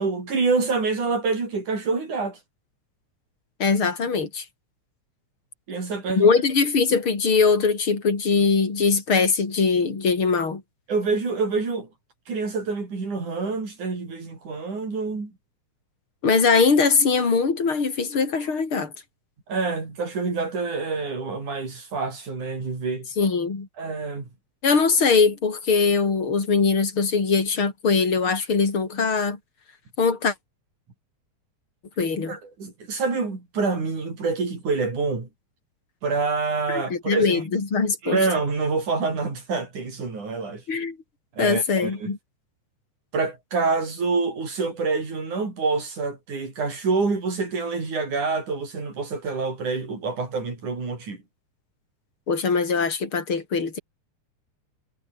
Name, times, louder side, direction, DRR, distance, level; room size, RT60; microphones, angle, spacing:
voice 1, 0.0-2.4 5.7-6.3 10.9-11.9 12.3-15.3 19.5-23.1 23.8-24.3 32.3-35.3 36.0-37.4 38.0-40.6 41.4-42.1 43.1-51.2, right 4 dB, 80° right, 7.8 m, -27 dB
voice 2, 3.6-4.5 6.2-10.6 16.2-18.9 23.2-23.7 24.6-29.4 30.0-30.3 32.0-32.4 36.7-38.2 40.7-41.0 41.4-42.2 52.3-53.8, left 5 dB, 40° left, 5.2 m, -21 dB
omnidirectional pair, 3.4 m